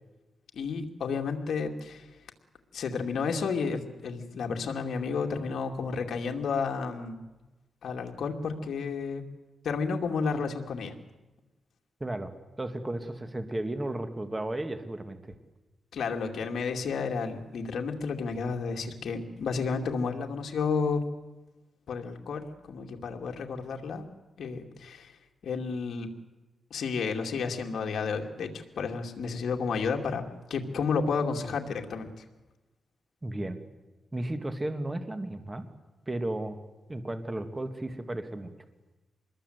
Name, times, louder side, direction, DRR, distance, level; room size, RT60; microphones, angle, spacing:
voice 1, 0.5-2.1 2.7-7.2 7.8-9.2 9.6-10.9 15.9-21.0 21.9-24.1 24.4-25.1 25.4-26.1 26.7-30.2 30.5-32.2, left 5 dB, 75° left, 3 dB, 2.5 m, -31 dB
voice 2, 12.6-15.3 33.2-33.6 34.1-35.7 36.1-36.6 36.9-38.5, right 1 dB, 20° right, 8 dB, 1.9 m, -34 dB
25.5 x 21.5 x 8.1 m, 1.1 s
wide cardioid pair, 115°, 0 cm